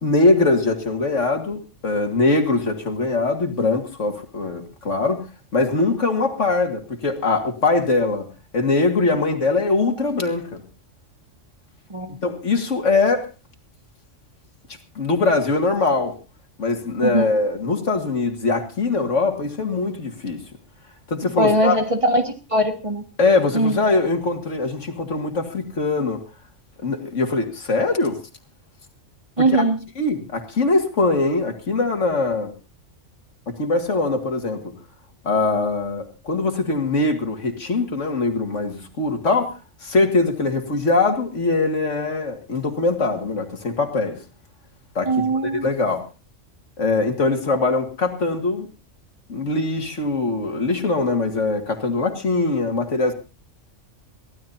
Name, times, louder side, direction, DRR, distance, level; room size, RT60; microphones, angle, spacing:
voice 1, 0.0-5.3 5.5-8.3 8.5-10.6 12.2-13.2 15.0-16.1 16.6-20.4 21.1-21.8 23.2-26.2 26.8-28.2 29.4-29.6 30.0-32.5 33.5-34.7 35.2-39.5 39.8-44.2 45.0-46.0 46.8-48.7 49.3-53.1, left 3 dB, 70° left, 5 dB, 2.3 m, -22 dB
voice 2, 17.0-17.3 21.4-23.0 23.5-23.8 29.4-29.8 45.1-45.7, right 1 dB, 25° right, 4 dB, 1.9 m, -20 dB
23.5 x 15.5 x 2.7 m, 0.32 s
omnidirectional pair, 1.3 m